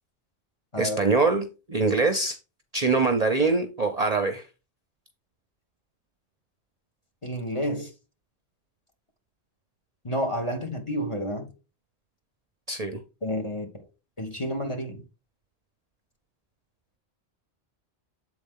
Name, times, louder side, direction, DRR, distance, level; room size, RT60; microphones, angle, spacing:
voice 1, 0.8-2.4 2.7-4.4 12.7-13.0, right 3 dB, 40° right, 0.7 m, -23 dB
voice 2, 7.2-7.9 10.0-11.5 13.2-13.9 14.2-15.0, equal, 30° left, 1.3 m, -30 dB
7.6 x 4.1 x 3.7 m
omnidirectional pair, 1.1 m